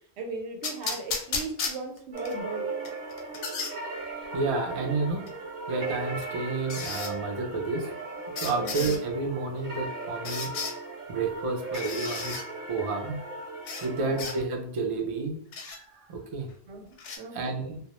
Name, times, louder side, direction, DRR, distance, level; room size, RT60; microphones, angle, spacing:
voice 1, 0.2-2.7 8.6-8.9 14.0-14.3 16.7-17.5, right 3 dB, 75° right, 2 dB, 0.8 m, -38 dB
sound 1, 0.6-2.3 2.9-3.7 5.3-5.4 6.7-7.1 8.4-9.0 10.3-10.8 11.7-12.4 13.7-13.9 14.2-14.4 15.5-15.8 17.0-17.2, left 4 dB, 90° left, 0.9 m, -34 dB
sound 2, 2.1-14.4, right 3 dB, 40° right, 0.7 m, -37 dB
voice 2, 4.3-5.3 5.7-7.9 8.4-10.5 11.1-12.4 12.7-13.2 13.8-16.5 17.3-17.8, right 3 dB, 60° right, 2 dB, 0.3 m, -30 dB
2.1 x 2.1 x 2.9 m, 0.65 s
omnidirectional pair, 1.2 m